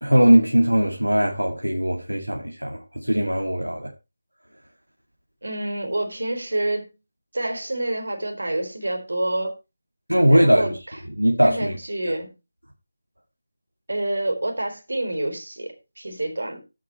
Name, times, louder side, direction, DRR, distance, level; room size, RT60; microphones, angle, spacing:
voice 1, 0.0-3.9 10.1-10.8 11.2-11.8 12.0-12.1, equal, 90° right, 2.0 m, -19 dB
voice 2, 5.4-6.9 7.3-9.5 10.3-11.0 11.4-12.3 13.9-16.6, right 1 dB, 65° right, 3.9 m, -28 dB
14.5 x 6.0 x 4.5 m
figure-of-eight pair, 160°, 0 cm